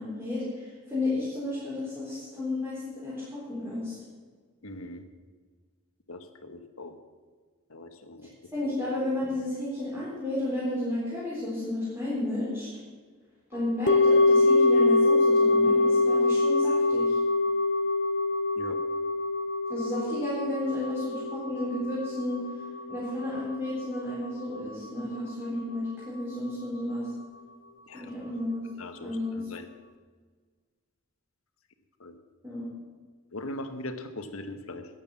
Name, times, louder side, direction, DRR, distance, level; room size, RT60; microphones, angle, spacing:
voice 1, 0.0-3.9 8.5-12.7 13.5-17.2 19.7-22.4 22.9-27.1 27.9-28.6 29.0-29.4 32.4-32.7, left 1 dB, 10° right, -10 dB, 4.3 m, -32 dB
voice 2, 4.6-5.0 6.1-6.9 7.7-8.3 18.5-18.8 27.9-28.1 28.8-29.7 32.0-32.1 33.3-34.9, left 1 dB, 75° left, 8 dB, 1.3 m, -40 dB
sound 1, 13.9-24.1 24.4-24.5, left 3 dB, 55° left, 0.8 m, -24 dB
12.5 x 9.7 x 7.2 m, 1.5 s
head